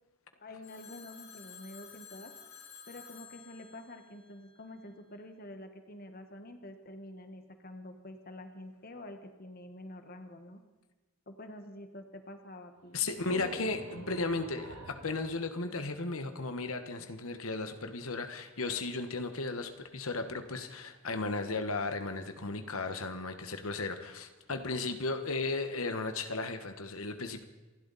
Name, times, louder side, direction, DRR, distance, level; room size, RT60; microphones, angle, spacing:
voice 1, 0.3-2.3 2.9-10.6 11.3-13.1, left 1 dB, 45° left, 7 dB, 1.5 m, -48 dB
Telephone, 0.6-4.9, left 7 dB, 70° left, 4.1 m, -52 dB
sound 1, 12.8-16.5, right 2 dB, 80° right, 2.1 m, -48 dB
voice 2, 12.9-27.4, left 3 dB, 85° left, 7 dB, 1.4 m, -35 dB
28.0 x 12.0 x 4.2 m, 1.2 s
head